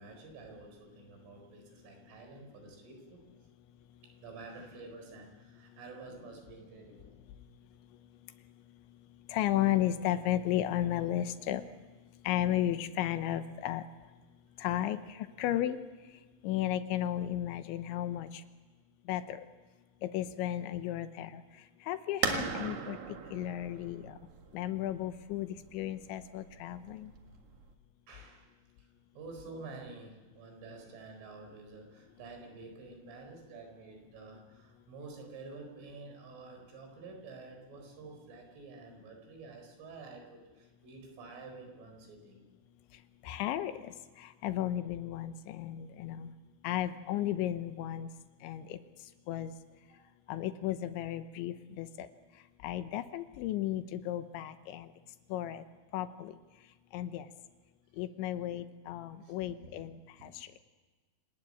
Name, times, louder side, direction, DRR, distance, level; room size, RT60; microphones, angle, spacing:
voice 1, 0.0-3.2 4.2-7.1 28.1-28.5 29.2-42.4 49.9-50.1 59.2-59.7 60.2-60.3, right 3 dB, 85° right, 3 dB, 7.1 m, -49 dB
voice 2, 9.3-11.6 12.3-13.8 14.6-15.0 15.4-15.8 16.4-18.3 19.1-19.4 20.0-21.4 21.9-23.0 23.3-24.1 24.5-27.1 43.3-43.9 44.4-46.3 46.6-48.1 48.4-48.8 49.3-49.5 50.3-52.1 52.6-54.9 55.3-55.6 55.9-56.3 56.9-57.3 58.0-59.9 60.2-60.3, left 12 dB, 80° left, 10 dB, 3.2 m, -34 dB
sound 1, 22.2-27.7, right 5 dB, 55° right, 2.2 m, -39 dB
27.5 x 19.0 x 8.7 m, 1.3 s
omnidirectional pair, 5.5 m